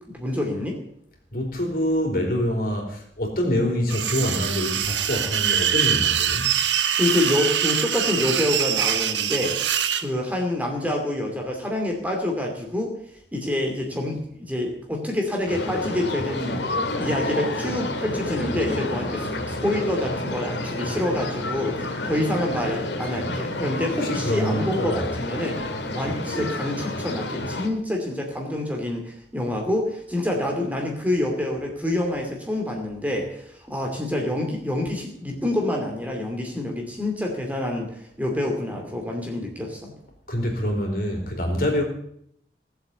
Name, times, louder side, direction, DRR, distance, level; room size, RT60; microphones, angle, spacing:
voice 1, 0.1-0.8 7.0-9.6 10.0-12.9 13.3-16.6 17.0-25.6 25.9-39.9, left 1 dB, 10° right, 1 dB, 2.6 m, -27 dB
voice 2, 1.3-6.6 23.9-25.1 40.3-41.8, left 1 dB, 50° left, 1 dB, 4.2 m, -25 dB
sound 1, 3.9-10.0, right 9 dB, 80° right, 1.2 m, -24 dB
sound 2, 15.5-27.7, left 2 dB, 75° left, 2.3 m, -29 dB
18.5 x 7.9 x 8.3 m, 0.71 s
head